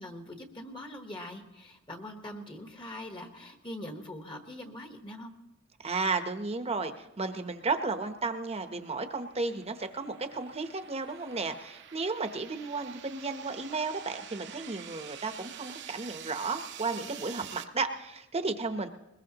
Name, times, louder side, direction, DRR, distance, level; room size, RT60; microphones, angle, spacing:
voice 1, 0.0-5.3, left 1 dB, 25° left, 5 dB, 1.3 m, -43 dB
voice 2, 5.8-18.9, right 3 dB, 30° right, 8 dB, 0.9 m, -33 dB
sound 1, 8.7-17.6, right 9 dB, 60° right, 0.8 m, -47 dB
21.0 x 20.5 x 3.0 m, 0.95 s
head